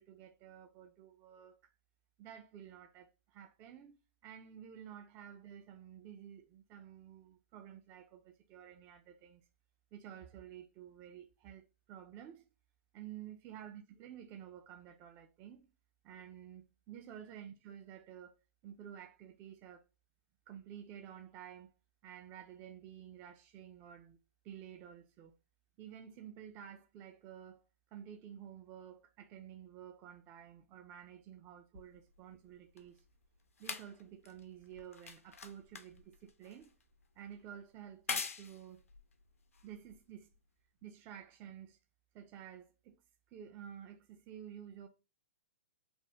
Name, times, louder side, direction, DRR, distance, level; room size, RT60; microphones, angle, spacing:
voice 1, 0.0-1.7 2.2-4.0 4.2-9.4 9.9-12.5 12.9-15.7 16.0-18.4 18.6-19.8 20.5-21.7 22.0-24.2 24.4-25.3 25.8-27.6 27.9-33.0 33.6-36.7 37.2-38.9 39.6-40.3 40.8-41.8 42.1-43.0 43.3-44.9, right 9 dB, 30° right, 0.3 m, -52 dB
sound 1, 31.7-40.4 41.2-41.3, left 5 dB, 85° left, 0.5 m, -46 dB
3.4 x 2.1 x 2.8 m
hypercardioid pair, 120°, 7 cm